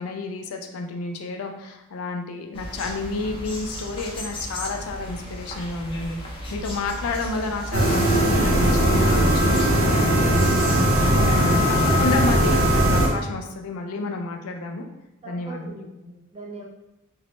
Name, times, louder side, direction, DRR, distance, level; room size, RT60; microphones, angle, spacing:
voice 1, 0.0-10.6 11.0-14.9 15.2-15.8, left 3 dB, 80° left, 3 dB, 0.4 m, -31 dB
sound 1, 2.5-11.2, equal, 25° left, 0.5 m, -35 dB
sound 2, 7.7-13.1, right 1 dB, 70° right, 0.7 m, -19 dB
voice 2, 15.2-16.6, right 2 dB, 25° right, -3 dB, 0.6 m, -40 dB
3.0 x 2.0 x 2.9 m, 0.93 s
head